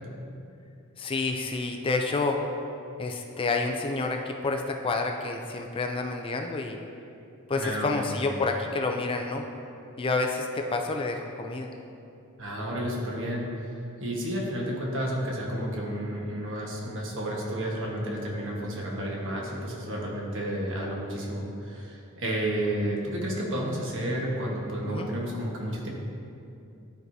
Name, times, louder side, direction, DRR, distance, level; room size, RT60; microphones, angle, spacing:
voice 1, 1.0-2.4 3.0-6.8 7.5-9.4 10.0-11.7 24.9-25.1, left 3 dB, 25° left, 3 dB, 0.4 m, -29 dB
voice 2, 7.5-8.2 12.4-13.7 14.0-25.9, right 1 dB, 60° right, -2 dB, 1.2 m, -31 dB
12.0 x 4.7 x 2.6 m, 2.7 s
head